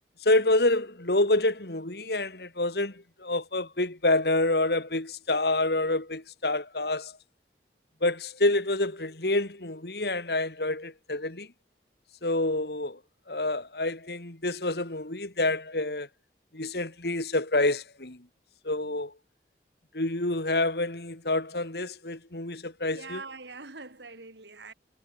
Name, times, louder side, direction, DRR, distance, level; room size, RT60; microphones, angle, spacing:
voice 1, 0.2-7.1 8.0-11.5 12.2-13.0 13.3-16.1 16.5-18.2 18.6-19.1 19.9-23.2, left 2 dB, 65° left, 2.5 m, -27 dB
voice 2, 22.9-24.7, right 4 dB, 80° right, 2.9 m, -43 dB
head